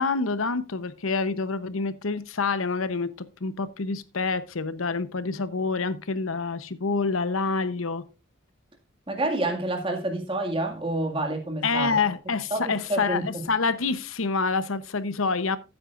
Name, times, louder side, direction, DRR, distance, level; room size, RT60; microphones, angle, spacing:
voice 1, 0.0-8.0 11.6-15.6, left 4 dB, 80° left, 0.9 m, -27 dB
voice 2, 9.1-11.9 12.5-13.5, right 1 dB, 25° right, 2.0 m, -28 dB
15.0 x 8.9 x 2.5 m
head